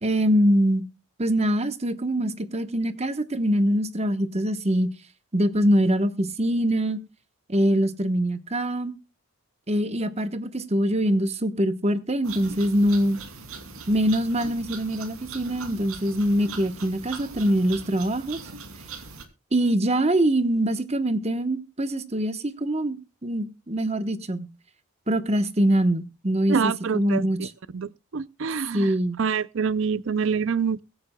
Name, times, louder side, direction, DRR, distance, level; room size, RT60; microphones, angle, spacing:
voice 1, 0.0-0.8 1.2-4.9 5.3-7.0 7.5-8.9 9.7-13.2 13.9-18.4 19.5-24.5 25.1-27.5 28.7-29.2, right 1 dB, 30° right, 1.0 m, -23 dB
sound 1, 12.2-19.3, right 4 dB, 75° right, 2.7 m, -40 dB
voice 2, 26.5-27.5 27.7-30.8, right 6 dB, 60° right, 0.5 m, -26 dB
23.0 x 9.4 x 2.3 m
head